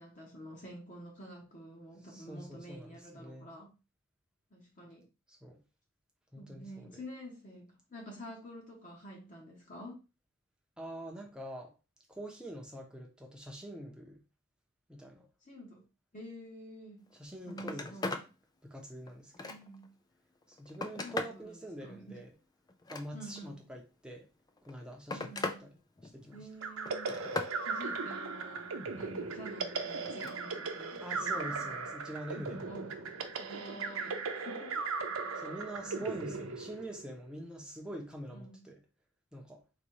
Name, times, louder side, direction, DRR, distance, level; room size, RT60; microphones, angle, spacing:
voice 1, 0.0-3.7 4.5-5.1 6.4-10.0 15.4-15.8 16.1-17.1 17.5-18.2 19.4-19.9 21.0-22.2 23.1-23.6 25.1-25.7 26.3-27.2 27.6-31.6 32.6-33.0 33.4-34.9 35.8-36.5 38.3-38.7, equal, 35° left, 1.0 m, -49 dB
voice 2, 2.1-3.5 5.3-5.6 6.3-6.9 10.8-11.7 12.1-14.2 14.9-15.3 17.2-18.2 18.6-19.5 20.5-22.3 22.9-24.3 24.6-25.7 26.1-26.5 31.0-32.7 35.4-38.8 39.3-39.6, right 1 dB, 5° right, 0.7 m, -45 dB
Telephone, 17.1-17.2 17.5-18.3 18.8-19.9 20.4-21.4 22.7-23.5 24.5-25.6 26.0-26.4 26.9-27.6 30.0-30.4 31.8-31.9, left 3 dB, 20° left, 0.3 m, -39 dB
sound 1, 26.6-37.2, right 4 dB, 85° right, 0.7 m, -38 dB
4.1 x 2.4 x 4.6 m
head